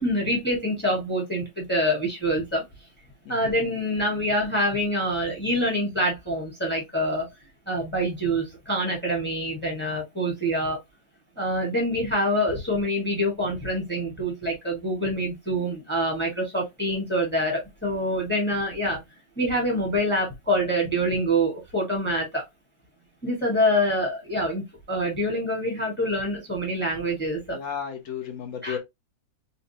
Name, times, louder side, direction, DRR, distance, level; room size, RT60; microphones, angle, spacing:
voice 1, 0.0-2.6 3.3-7.3 7.7-10.8 11.4-19.0 19.4-22.4 23.2-27.6 28.6-28.8, equal, 5° left, 1.0 m, -26 dB
voice 2, 27.5-28.8, left 7 dB, 60° left, 0.9 m, -33 dB
4.1 x 2.4 x 2.7 m
omnidirectional pair, 2.0 m